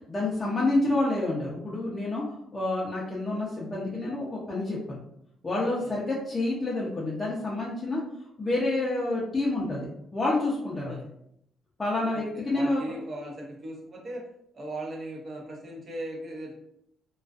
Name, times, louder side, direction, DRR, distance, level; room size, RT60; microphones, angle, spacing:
voice 1, 0.1-2.2 2.5-5.0 5.4-8.0 8.4-11.0 11.8-12.8, left 2 dB, 25° left, -5 dB, 0.6 m, -28 dB
voice 2, 10.7-11.1 12.1-14.2 14.5-16.6, right 1 dB, 40° right, 0 dB, 0.7 m, -38 dB
2.3 x 2.2 x 2.4 m, 0.76 s
cardioid pair, 90°, 0 cm